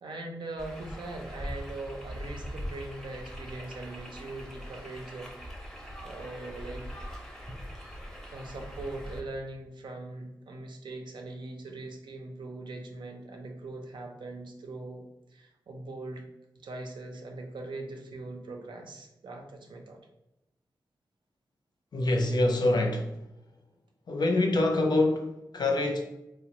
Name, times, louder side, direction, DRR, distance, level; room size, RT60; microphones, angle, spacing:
voice 1, 0.0-5.3 6.0-6.9 8.3-15.0 15.3-16.2 16.6-20.0, right 2 dB, 80° right, 0.5 m, -41 dB
sound 1, 0.6-9.2, equal, 5° left, 0.5 m, -41 dB
voice 2, 21.9-23.2 24.1-26.0, left 2 dB, 65° left, 0.4 m, -25 dB
2.9 x 2.0 x 2.9 m
wide cardioid pair, 80°, 8 cm